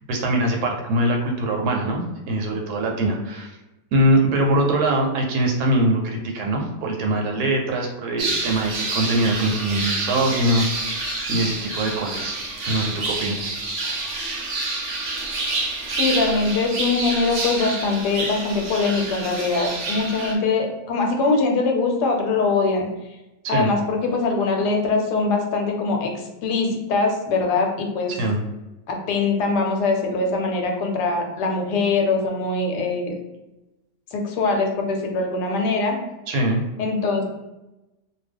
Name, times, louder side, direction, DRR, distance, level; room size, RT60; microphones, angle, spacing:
voice 1, 0.1-3.5 3.9-12.4 12.6-13.5 23.4-23.7 28.2-28.4 36.3-36.6, right 1 dB, 75° right, 1 dB, 1.1 m, -22 dB
sound 1, 8.2-20.3, right 2 dB, 60° right, 0.8 m, -28 dB
voice 2, 16.0-22.9 23.5-26.1 26.4-28.1 28.9-33.2 34.1-36.0 36.8-37.2, left 3 dB, 80° left, 2 dB, 1.2 m, -22 dB
2.7 x 2.2 x 3.4 m, 0.99 s
omnidirectional pair, 1.8 m